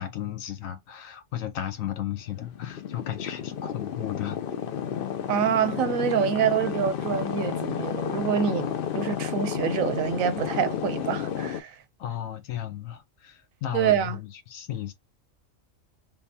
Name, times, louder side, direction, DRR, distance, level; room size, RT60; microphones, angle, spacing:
voice 1, 0.0-4.4 12.0-14.9, left 11 dB, 85° left, 1.3 m, -34 dB
sound 1, 2.2-11.6, left 8 dB, 60° left, 0.6 m, -31 dB
voice 2, 5.3-11.8 13.7-14.2, right 8 dB, 90° right, 1.1 m, -26 dB
3.7 x 3.0 x 2.7 m
omnidirectional pair, 1.4 m